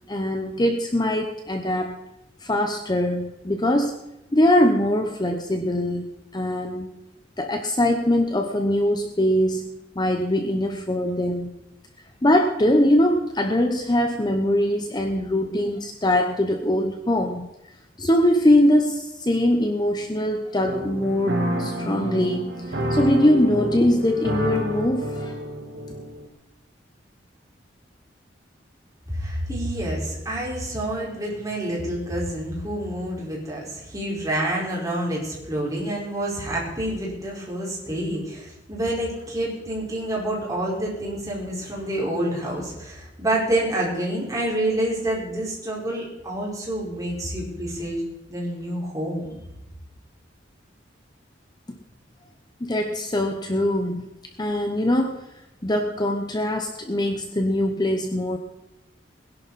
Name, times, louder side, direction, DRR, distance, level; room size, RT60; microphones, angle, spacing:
voice 1, 0.1-1.9 2.4-4.0 4.3-6.1 6.3-6.9 7.4-9.7 10.0-11.5 12.2-17.5 18.0-25.3 52.6-54.1 54.4-55.2 55.6-58.4, left 1 dB, 20° left, 5 dB, 0.9 m, -22 dB
sound 1, 20.6-26.3, equal, 65° right, 2.3 m, -28 dB
voice 2, 29.1-49.3, right 1 dB, 20° right, -4 dB, 4.7 m, -28 dB
20.5 x 11.0 x 4.2 m, 0.93 s
head